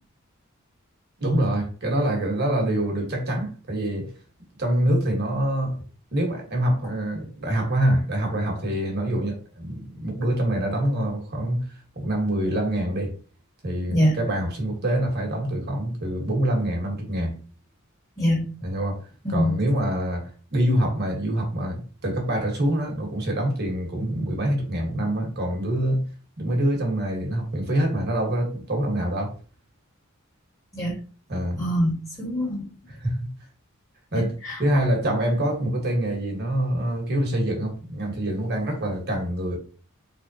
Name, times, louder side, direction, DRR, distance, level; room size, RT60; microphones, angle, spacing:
voice 1, 1.2-4.1 4.6-5.8 6.1-11.7 11.9-13.1 13.6-17.4 18.6-19.0 19.3-26.1 26.4-29.3 31.3-31.6 32.9-33.3 34.1-34.3 34.6-39.6, right 1 dB, 50° right, 1.6 m, -25 dB
voice 2, 19.2-19.6 30.7-30.9 31.6-32.7 34.1-34.6, equal, 15° left, 2.0 m, -24 dB
3.9 x 3.5 x 2.9 m
head